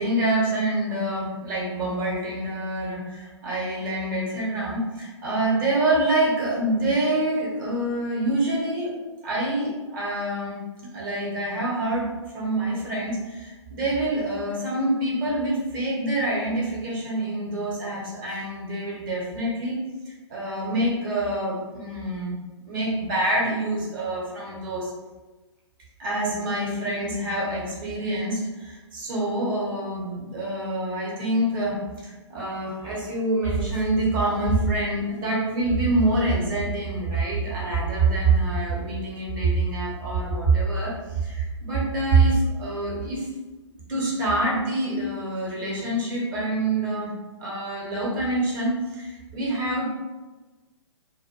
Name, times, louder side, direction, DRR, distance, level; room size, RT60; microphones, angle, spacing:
voice 1, 0.0-8.9 9.2-10.6 10.9-19.8 20.3-22.3 22.6-24.9 26.0-31.8 32.0-43.3 43.9-47.1 47.4-49.9, right 2 dB, 40° right, -5 dB, 0.9 m, -26 dB
2.2 x 2.1 x 3.0 m, 1.2 s
figure-of-eight pair, 125°, 16 cm